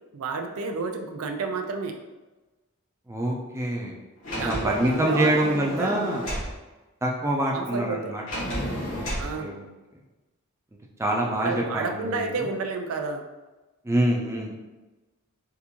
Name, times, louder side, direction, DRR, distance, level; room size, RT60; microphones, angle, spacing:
voice 1, 0.1-2.0 4.3-6.0 7.5-8.2 9.2-9.6 11.4-13.2, right 3 dB, 80° right, 4 dB, 0.4 m, -30 dB
voice 2, 3.1-4.0 4.4-6.3 7.0-8.2 8.9-9.6 11.0-12.5 13.8-14.5, right 1 dB, 15° right, -1 dB, 0.4 m, -26 dB
Sliding door, 4.2-6.5 8.3-9.3, equal, 65° left, 1.4 m, -32 dB
3.7 x 2.5 x 2.8 m, 1.1 s
head